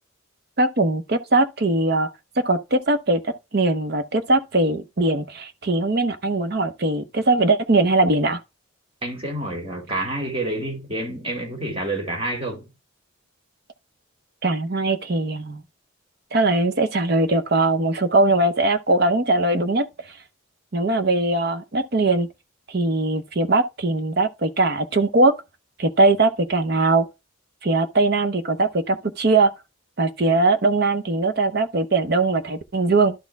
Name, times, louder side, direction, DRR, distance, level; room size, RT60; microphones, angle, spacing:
voice 1, 0.6-2.1 2.4-8.4 14.4-15.6 16.3-19.8 20.7-22.3 22.7-25.3 25.8-27.1 27.6-29.5 30.0-33.1, right 2 dB, 50° right, 0.7 m, -20 dB
voice 2, 9.0-12.7, right 1 dB, 25° right, 2.4 m, -28 dB
12.0 x 4.3 x 3.4 m
head